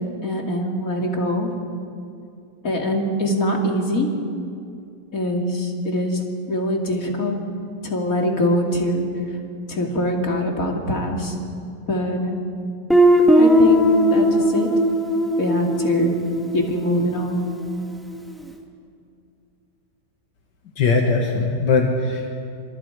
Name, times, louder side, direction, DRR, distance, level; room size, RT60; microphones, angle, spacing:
voice 1, 0.2-1.5 2.6-4.1 5.1-6.2 6.5-7.4 7.8-9.0 9.7-11.4 11.9-12.4 13.3-14.7 15.4-16.1 16.5-17.4, left 1 dB, 55° left, 1 dB, 3.0 m, -23 dB
Guitar, 12.9-17.6, equal, ahead, 2.1 m, -18 dB
voice 2, 20.8-22.3, left 4 dB, 90° left, 1 dB, 2.3 m, -20 dB
29.5 x 25.5 x 4.9 m, 2.5 s
omnidirectional pair, 1.8 m